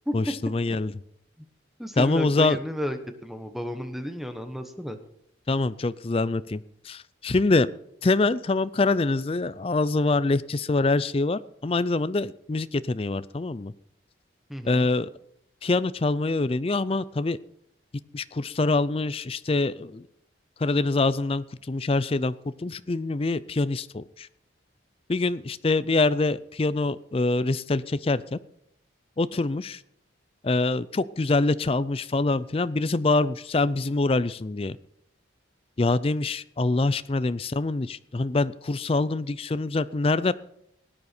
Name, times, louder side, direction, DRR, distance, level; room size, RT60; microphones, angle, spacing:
voice 1, 0.1-0.9 2.0-2.6 5.5-7.7 8.0-13.7 14.6-15.1 15.6-17.4 18.1-20.0 20.6-24.3 25.1-28.4 29.2-29.8 30.4-34.8 35.8-40.3, left 3 dB, 30° left, 16 dB, 0.4 m, -25 dB
voice 2, 1.8-5.0 14.5-14.9, equal, ahead, 7 dB, 1.0 m, -32 dB
17.5 x 9.7 x 4.4 m, 0.75 s
head